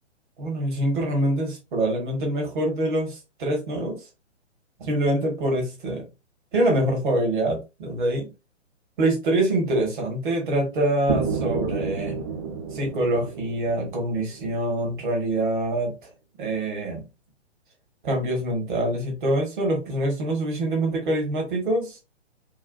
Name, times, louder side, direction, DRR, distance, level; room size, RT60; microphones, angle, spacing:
voice 1, 0.4-4.0 4.8-6.0 6.5-8.3 9.0-12.2 12.7-15.9 16.4-17.0 18.0-22.0, right 1 dB, 45° right, 1.5 m, -25 dB
sound 1, 11.1-15.0, right 6 dB, 25° right, 0.5 m, -30 dB
4.6 x 2.4 x 2.2 m
figure-of-eight pair, 125°, 35 cm